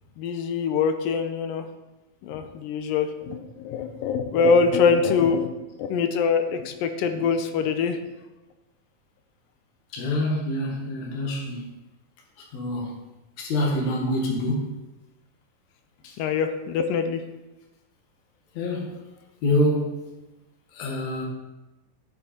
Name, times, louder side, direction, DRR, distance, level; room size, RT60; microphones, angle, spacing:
voice 1, 0.2-1.7 2.2-5.5 5.8-8.0 16.2-17.2, left 5 dB, 80° left, 2.3 m, -24 dB
voice 2, 9.9-11.7 12.5-13.0 13.4-14.8 16.0-16.1 18.6-18.9 19.4-20.0 20.7-21.3, left 1 dB, 55° left, 2.7 m, -26 dB
12.0 x 6.8 x 4.3 m
omnidirectional pair, 4.3 m